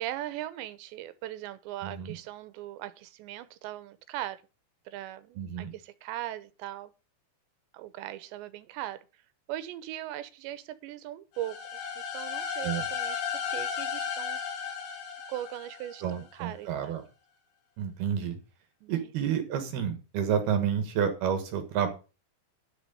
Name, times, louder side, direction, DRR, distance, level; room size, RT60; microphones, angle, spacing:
voice 1, 0.0-4.4 4.9-6.9 7.7-9.1 9.5-11.8 12.1-13.2 13.5-14.4 15.3-17.0 18.8-19.1, right 13 dB, 85° right, 3.0 m, -39 dB
voice 2, 1.8-2.2 5.4-5.7 12.6-12.8 16.0-17.0 17.8-18.4 18.9-21.9, right 8 dB, 70° right, 3.0 m, -30 dB
sound 1, 11.4-16.2, left 7 dB, 65° left, 5.0 m, -35 dB
11.0 x 6.1 x 6.8 m
omnidirectional pair, 5.3 m